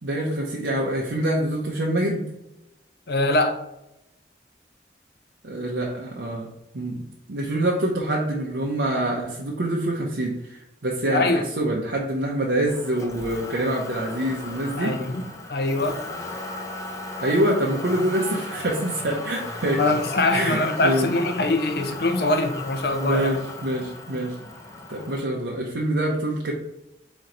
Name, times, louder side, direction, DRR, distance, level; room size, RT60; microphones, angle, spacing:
voice 1, 0.0-2.2 5.4-6.5 6.7-7.0 7.3-15.0 17.2-19.8 20.3-21.1 23.0-24.4 24.9-26.5, right 1 dB, 85° right, 0.7 m, -25 dB
voice 2, 3.1-3.6 11.1-11.4 14.8-15.2 15.5-16.0 19.8-23.4, left 2 dB, 60° left, 0.6 m, -23 dB
Motor vehicle (road), 12.7-25.2, left 2 dB, 20° left, 0.6 m, -36 dB
4.3 x 3.0 x 3.8 m
head